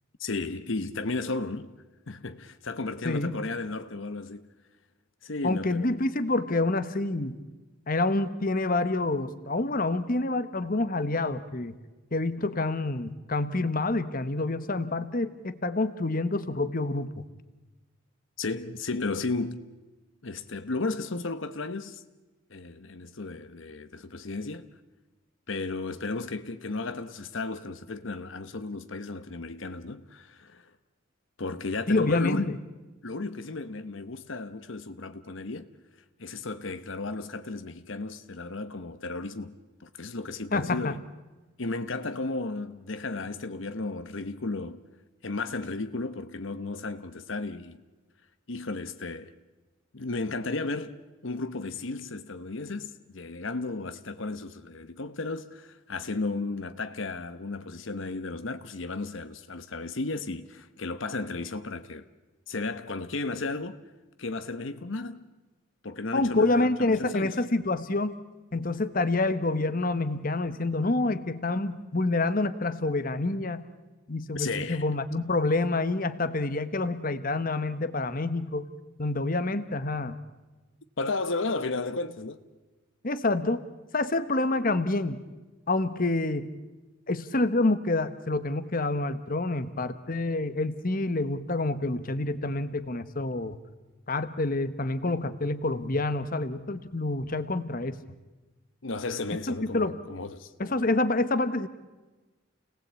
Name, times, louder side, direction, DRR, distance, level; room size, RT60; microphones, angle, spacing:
voice 1, 0.2-1.7 2.1-4.4 5.2-5.9 18.4-19.6 20.2-22.0 22.5-24.7 25.5-30.7 31.4-32.5 33.0-35.7 36.2-39.5 39.8-41.0 41.6-44.8 45.2-47.8 48.5-49.3 49.9-51.0 51.2-62.0 62.5-63.8 64.2-65.2 65.8-67.3 74.3-74.8 81.0-82.4 98.8-100.5, left 3 dB, 70° left, 1.0 m, -34 dB
voice 2, 3.0-3.4 5.4-7.4 7.9-11.8 12.1-17.2 31.9-32.6 40.5-41.0 66.1-68.1 68.5-73.6 74.1-78.7 79.0-80.2 83.0-83.6 83.9-85.2 85.7-86.5 87.1-93.6 94.1-98.0 99.7-100.0 100.6-101.7, left 2 dB, 45° left, 1.2 m, -27 dB
29.0 x 19.0 x 8.4 m
head